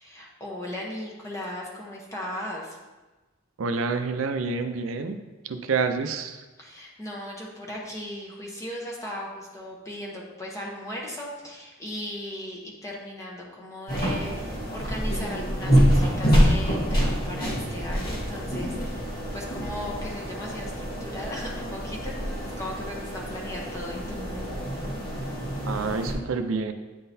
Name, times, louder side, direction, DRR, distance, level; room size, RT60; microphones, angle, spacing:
voice 1, 0.0-2.8 6.6-24.2, left 1 dB, 15° left, -3 dB, 0.9 m, -37 dB
voice 2, 3.6-5.2 5.4-6.4 25.7-26.7, right 4 dB, 80° right, 8 dB, 0.5 m, -28 dB
sound 1, 13.9-26.1, equal, 50° left, 1.4 m, -26 dB
9.2 x 3.7 x 2.7 m, 1.2 s
head